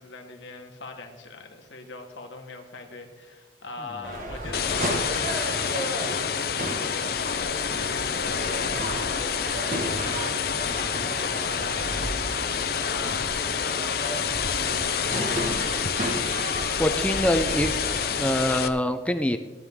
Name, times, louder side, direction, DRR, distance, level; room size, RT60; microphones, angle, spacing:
voice 1, 0.0-15.6, left 3 dB, 85° left, 3 dB, 1.6 m, -42 dB
sound 1, 4.0-18.5, right 1 dB, 45° right, 1.7 m, -34 dB
sound 2, 4.5-18.7, left 7 dB, 55° left, 0.6 m, -28 dB
voice 2, 16.8-17.7 18.2-19.4, left 1 dB, 5° left, 8 dB, 0.5 m, -24 dB
16.0 x 9.5 x 3.7 m, 1.2 s
head